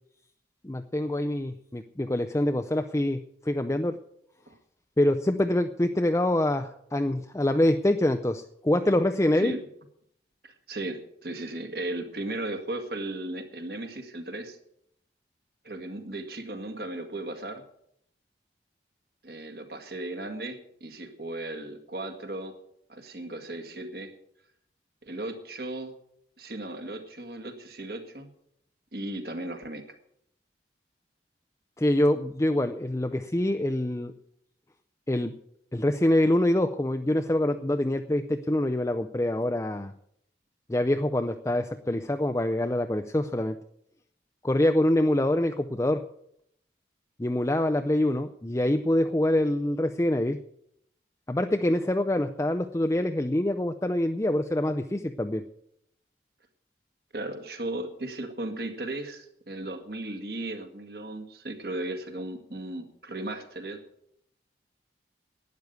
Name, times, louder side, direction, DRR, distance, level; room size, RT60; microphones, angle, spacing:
voice 1, 0.6-4.0 5.0-9.6 31.8-34.1 35.1-35.3 35.7-39.9 40.7-43.6 44.4-46.0 47.2-50.4 51.3-55.4, left 1 dB, 15° left, 6 dB, 0.5 m, -25 dB
voice 2, 10.4-14.6 15.6-17.6 19.2-22.5 22.9-24.1 25.0-25.9 26.4-28.3 28.9-29.8 57.1-63.8, right 2 dB, 55° right, 6 dB, 1.9 m, -36 dB
12.0 x 9.4 x 8.2 m, 0.72 s
head